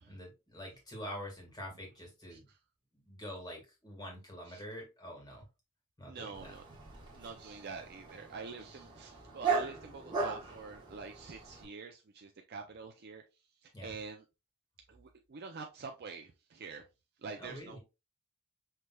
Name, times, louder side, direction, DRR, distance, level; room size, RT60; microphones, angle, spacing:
voice 1, 0.0-2.5 2.9-5.5 6.0-6.5 13.7-13.9 17.4-17.8, equal, 20° left, 0 dB, 1.8 m, -46 dB
voice 2, 6.1-6.6 7.2-13.2 13.6-14.2 14.9-16.8 17.2-17.8, right 4 dB, 50° right, 3 dB, 0.5 m, -46 dB
Dog, 6.3-11.7, right 4 dB, 20° right, 1.5 m, -38 dB
5.7 x 3.3 x 2.2 m, 0.26 s
head